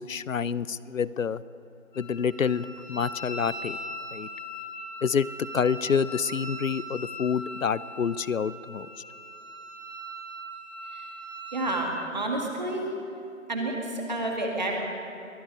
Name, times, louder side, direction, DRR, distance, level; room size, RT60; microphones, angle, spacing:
voice 1, 0.0-1.4 2.0-3.8 4.1-4.3 5.0-5.3 5.5-8.9, left 6 dB, 75° left, 19 dB, 0.6 m, -27 dB
Wind instrument woodwind instrument, 1.9-11.9, equal, 35° left, 5.1 m, -40 dB
voice 2, 11.5-12.9 13.5-14.8, right 2 dB, 35° right, 0 dB, 2.1 m, -29 dB
22.5 x 11.0 x 5.6 m, 2.7 s
figure-of-eight pair, 170°, 41 cm